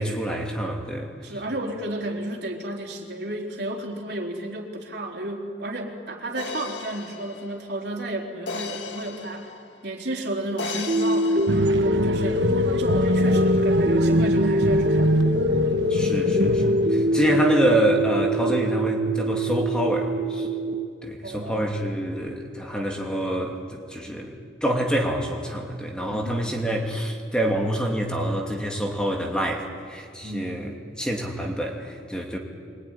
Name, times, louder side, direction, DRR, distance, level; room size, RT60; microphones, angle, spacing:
voice 1, 0.0-1.1 12.1-12.2 15.9-20.5 21.0-24.3 24.6-32.4, right 1 dB, 5° left, 0 dB, 2.7 m, -26 dB
voice 2, 1.2-9.5 9.8-12.4 12.8-15.2 21.2-21.7 26.1-26.4 30.2-30.5, right 1 dB, 65° right, 0 dB, 3.9 m, -32 dB
sound 1, 6.4-9.9 10.6-11.9, left 4 dB, 85° left, 1.9 m, -36 dB
sound 2, 10.9-20.9, left 1 dB, 45° right, 1.3 m, -23 dB
sound 3, 11.5-17.9 18.2-18.3, right 2 dB, 90° right, 1.2 m, -25 dB
24.5 x 24.0 x 9.9 m, 2.2 s
head